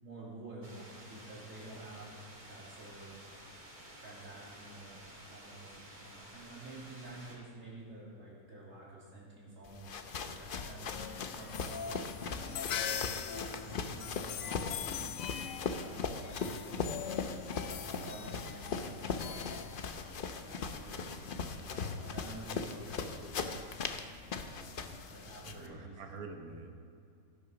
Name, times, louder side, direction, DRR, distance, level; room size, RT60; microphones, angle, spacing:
voice 1, 0.0-3.2 3.9-17.4 17.9-23.9 24.4-26.0, right 2 dB, 65° right, -6 dB, 3.2 m, -50 dB
sound 1, 0.6-7.4, right 1 dB, 30° right, 2.2 m, -53 dB
sound 2, 9.6-25.7, left 5 dB, 50° left, 0.7 m, -39 dB
sound 3, 10.9-20.4, left 8 dB, 70° left, 1.0 m, -42 dB
voice 2, 25.4-26.7, right 4 dB, 90° right, 5 dB, 1.5 m, -46 dB
15.5 x 6.7 x 5.9 m, 2.4 s
omnidirectional pair, 1.5 m